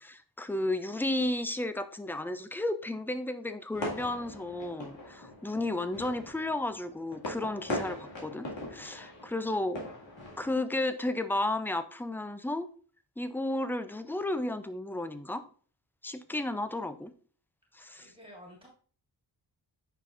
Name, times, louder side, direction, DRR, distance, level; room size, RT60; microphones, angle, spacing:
voice 1, 0.0-9.8 10.4-12.7 13.2-15.4 16.0-17.1 17.7-18.1, left 1 dB, 5° left, 11 dB, 0.3 m, -33 dB
sound 1, 3.7-10.5, left 1 dB, 90° left, 2.1 m, -40 dB
voice 2, 17.9-18.7, equal, 10° right, -2 dB, 1.7 m, -51 dB
8.2 x 5.8 x 2.5 m, 0.43 s
wide cardioid pair, 150°, 44 cm